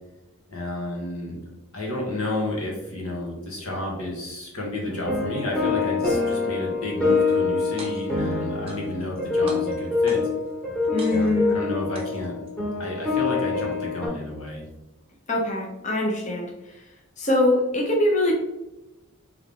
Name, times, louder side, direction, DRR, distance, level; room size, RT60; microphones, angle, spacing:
voice 1, 0.5-1.4 1.7-10.2 11.1-12.3 12.8-14.6, left 1 dB, 85° left, -1 dB, 1.4 m, -31 dB
sound 1, 4.8-14.1, left 4 dB, 5° left, 1.1 m, -25 dB
sound 2, 7.8-8.2 8.7-9.2 9.5-10.5 11.0-11.5 11.9-12.5, right 3 dB, 25° right, 0.6 m, -43 dB
voice 2, 10.9-11.6 15.3-16.5 17.2-18.3, left 1 dB, 35° left, -1 dB, 0.6 m, -23 dB
3.4 x 3.4 x 3.6 m, 0.97 s
head